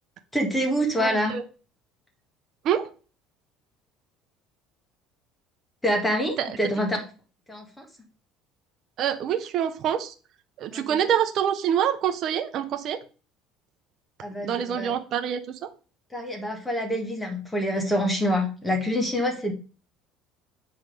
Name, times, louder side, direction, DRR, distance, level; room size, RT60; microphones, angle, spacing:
voice 1, 0.3-1.4 5.8-7.1 7.5-7.9 10.7-11.0 14.2-14.9 16.1-19.5, equal, 10° left, 2 dB, 1.8 m, -26 dB
voice 2, 1.0-1.4 2.6-2.8 6.4-6.6 9.0-10.1 10.6-13.0 14.4-15.7, right 9 dB, 55° right, 8 dB, 0.9 m, -26 dB
7.4 x 4.1 x 5.0 m, 0.35 s
cardioid pair, 115°, 0 cm